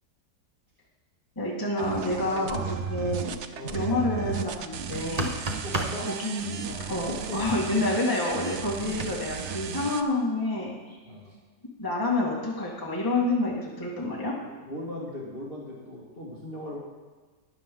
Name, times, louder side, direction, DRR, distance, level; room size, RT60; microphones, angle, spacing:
voice 1, 1.4-3.3 3.7-5.3 6.0-10.8 11.8-14.3, left 2 dB, 10° left, -4 dB, 2.1 m, -28 dB
sound 1, 1.8-10.0, right 7 dB, 80° right, 0.6 m, -35 dB
voice 2, 2.3-2.6 3.5-3.9 5.6-6.1 6.6-7.6 9.7-9.9 11.0-11.4 14.4-16.8, left 1 dB, 30° left, -5 dB, 2.1 m, -39 dB
sound 2, 4.9-6.0 9.0-9.1, right 2 dB, 25° right, 0.9 m, -30 dB
13.0 x 10.5 x 3.9 m, 1.4 s
omnidirectional pair, 2.0 m